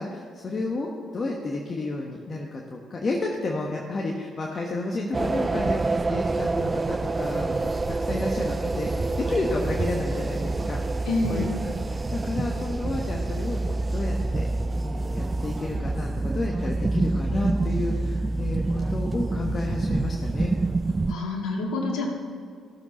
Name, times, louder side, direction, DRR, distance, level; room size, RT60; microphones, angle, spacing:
voice 1, 0.0-13.6 13.9-14.5 14.8-20.5, left 2 dB, 40° left, -1 dB, 1.2 m, -31 dB
sound 1, 5.1-21.1, right 3 dB, 30° right, 0.4 m, -27 dB
voice 2, 11.1-11.5 21.1-22.1, left 2 dB, 70° left, 0 dB, 2.0 m, -27 dB
15.5 x 7.2 x 4.2 m, 2.4 s
hypercardioid pair, 50°, 0 cm